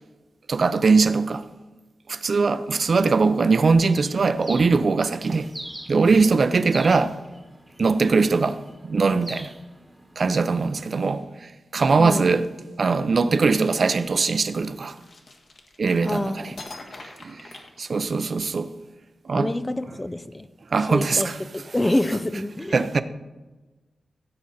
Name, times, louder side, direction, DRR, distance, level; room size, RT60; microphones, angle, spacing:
voice 1, 0.5-1.4 2.1-5.5 5.9-7.2 7.8-9.5 10.2-12.4 12.8-15.0 15.8-16.5 17.2-17.5 17.8-18.7 19.3-19.5 20.7-21.4 22.7-23.0, right 4 dB, 50° right, 0.6 m, -21 dB
Bird, 3.9-10.6, right 1 dB, 5° right, 1.3 m, -43 dB
voice 2, 12.0-12.3 16.0-16.4 19.3-20.5 20.9-23.0, left 1 dB, 15° left, 0.5 m, -27 dB
sound 1, 15.0-16.1 16.6-18.4, left 2 dB, 45° left, 1.6 m, -43 dB
16.0 x 7.8 x 4.2 m
wide cardioid pair, 125°, 0 cm